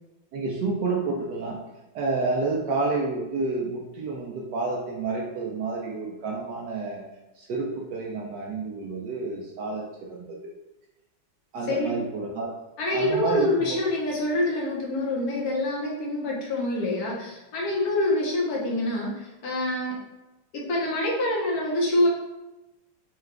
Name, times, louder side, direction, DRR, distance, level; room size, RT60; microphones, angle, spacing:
voice 1, 0.3-1.6 1.9-7.0 7.3-9.8 10.1-10.5 11.5-12.5 12.9-13.8, right 3 dB, 75° right, -1 dB, 1.0 m, -29 dB
voice 2, 11.7-12.0 12.8-19.9 20.5-22.1, left 1 dB, 55° left, -3 dB, 1.2 m, -26 dB
4.7 x 2.3 x 3.2 m, 1.0 s
omnidirectional pair, 2.3 m